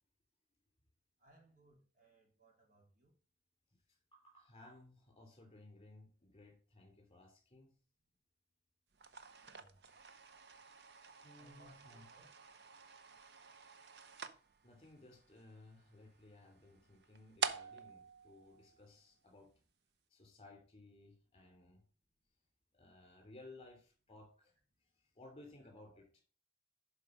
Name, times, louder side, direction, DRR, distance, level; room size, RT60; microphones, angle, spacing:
voice 1, 1.2-3.1 9.4-9.9 11.4-12.3 25.5-25.7, right 2 dB, 45° right, 0 dB, 2.8 m, -66 dB
voice 2, 3.9-7.7 11.2-12.1 14.6-19.5 20.1-21.8 22.7-24.6 25.1-26.2, left 2 dB, 35° left, 4 dB, 3.1 m, -59 dB
sound 1, 8.9-19.3, right 5 dB, 75° right, 0.8 m, -48 dB
11.5 x 4.7 x 5.1 m, 0.39 s
head